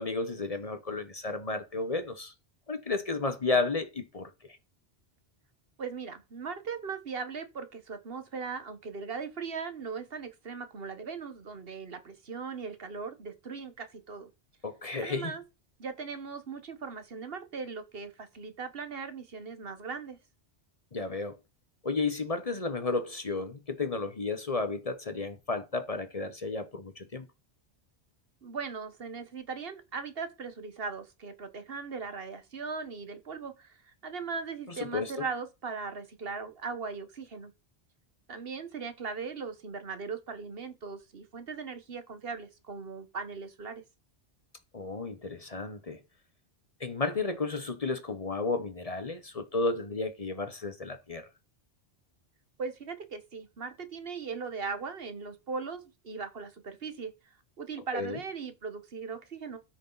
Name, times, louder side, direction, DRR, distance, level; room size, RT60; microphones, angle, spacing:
voice 1, 0.0-2.3 2.7-4.3 14.6-15.3 20.9-21.4 21.8-27.3 34.9-35.1 44.7-46.0 46.8-51.3 57.9-58.2, left 3 dB, 35° left, 1.0 m, -32 dB
voice 2, 5.8-14.3 15.0-15.4 15.8-20.2 28.4-37.5 38.3-43.8 52.6-57.1 57.6-59.6, right 5 dB, 65° right, 1.4 m, -39 dB
13.5 x 6.2 x 3.9 m
omnidirectional pair, 1.1 m